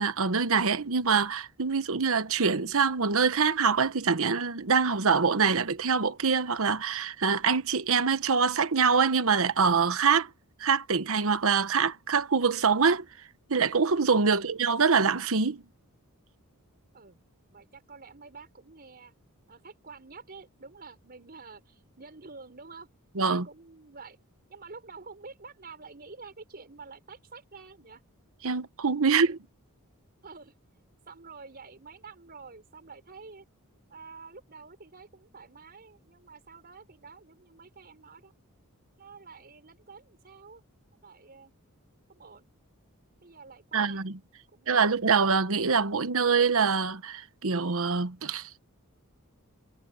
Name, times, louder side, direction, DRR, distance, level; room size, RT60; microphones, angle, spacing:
voice 1, 0.0-10.3 10.6-13.0 13.5-15.6 23.2-23.4 28.4-29.4 43.7-44.1 44.7-48.5, right 5 dB, 65° right, 1.1 m, -25 dB
voice 2, 17.5-19.1 19.5-22.9 23.3-24.2 24.5-28.0 29.1-29.4 30.2-30.5 31.0-33.4 33.9-38.3 39.0-40.6 41.0-41.5 42.1-42.5 43.2-44.0 44.5-44.9, right 4 dB, 45° right, 5.0 m, -48 dB
head